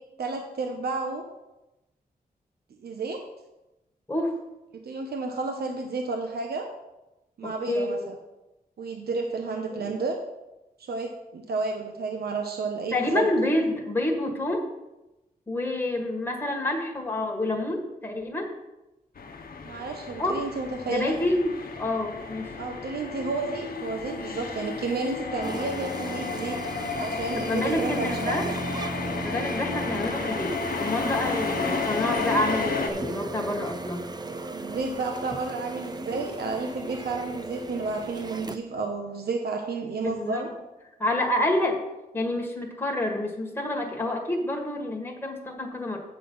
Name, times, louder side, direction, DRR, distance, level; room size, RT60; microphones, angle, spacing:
voice 1, 0.2-1.2 2.8-3.2 4.7-6.7 7.4-8.2 8.8-10.2 10.9-13.2 19.6-21.1 22.6-26.6 27.0-28.5 34.4-40.5, right 3 dB, 80° right, 3 dB, 1.0 m, -31 dB
voice 2, 4.1-4.4 7.7-7.9 9.7-9.9 12.9-14.7 15.5-18.5 20.2-20.4 20.9-22.5 27.3-28.5 29.2-34.1 40.0-40.4 41.0-41.8 42.1-46.0, left 1 dB, 15° left, 0 dB, 1.6 m, -28 dB
sound 1, 19.2-32.9, left 4 dB, 65° left, 1.0 m, -32 dB
sound 2, 25.4-38.6, right 2 dB, 25° right, 0.6 m, -36 dB
8.7 x 6.6 x 5.5 m, 0.98 s
wide cardioid pair, 110°, 16 cm